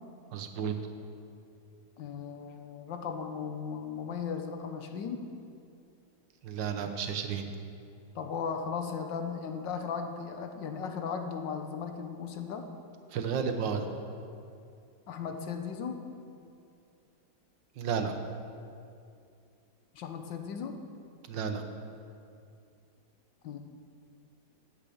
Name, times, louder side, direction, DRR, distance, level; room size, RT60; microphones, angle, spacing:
voice 1, 0.3-0.7 6.4-7.5 13.1-13.9 17.8-18.2 21.3-21.6, right 6 dB, 90° right, 6 dB, 1.6 m, -32 dB
voice 2, 2.0-5.3 8.1-12.7 15.1-16.0 19.9-20.8 23.4-23.6, left 6 dB, 85° left, 6 dB, 1.6 m, -36 dB
10.0 x 7.4 x 8.4 m, 2.5 s
omnidirectional pair, 1.9 m